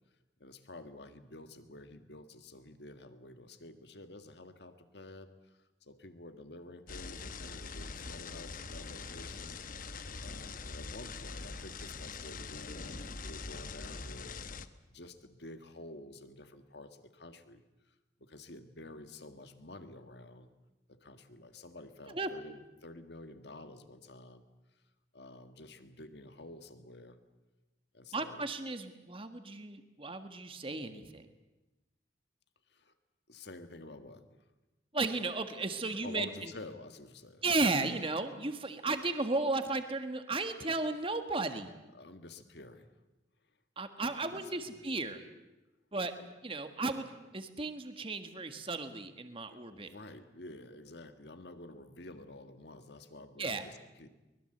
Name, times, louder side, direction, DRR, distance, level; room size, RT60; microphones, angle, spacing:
voice 1, 0.4-9.6 10.2-14.3 14.9-20.5 20.9-24.4 24.7-24.8 25.1-27.2 27.9-28.5 32.7-32.9 33.3-34.4 35.8-37.4 41.9-42.9 44.0-44.8 46.2-46.3 49.5-54.1, left 2 dB, 65° left, 8 dB, 1.8 m, -50 dB
sound 1, 6.9-14.7, left 4 dB, 50° left, 1.0 m, -43 dB
voice 2, 28.1-31.3 34.9-36.5 37.4-41.7 43.8-45.2 45.9-46.1 46.4-49.9 53.4-53.7, right 3 dB, 30° right, 8 dB, 1.6 m, -34 dB
23.5 x 21.0 x 8.0 m, 1.0 s
head